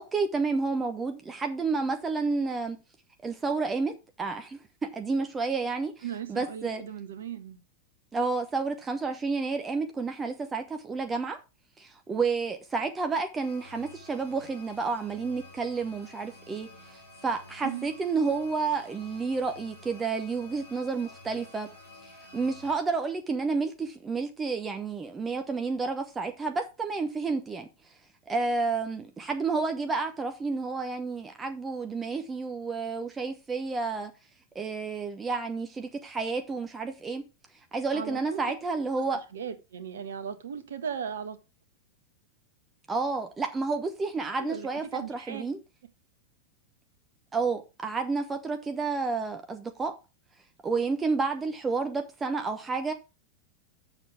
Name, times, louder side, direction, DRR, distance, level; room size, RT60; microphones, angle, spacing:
voice 1, 0.0-2.8 3.2-3.9 4.2-4.6 4.9-6.0 6.3-6.8 8.1-11.4 11.8-21.7 22.3-27.7 28.3-34.1 34.5-37.2 37.7-39.2 42.9-45.6 47.3-49.9 50.6-52.9, right 4 dB, 15° right, 1.0 m, -30 dB
voice 2, 6.0-7.6 17.6-17.9 37.9-38.4 39.1-41.4 44.4-45.4, right 8 dB, 65° right, 1.2 m, -37 dB
sound 1, 13.4-22.8, left 2 dB, 85° left, 3.4 m, -50 dB
7.3 x 6.2 x 5.0 m
figure-of-eight pair, 90°, 0 cm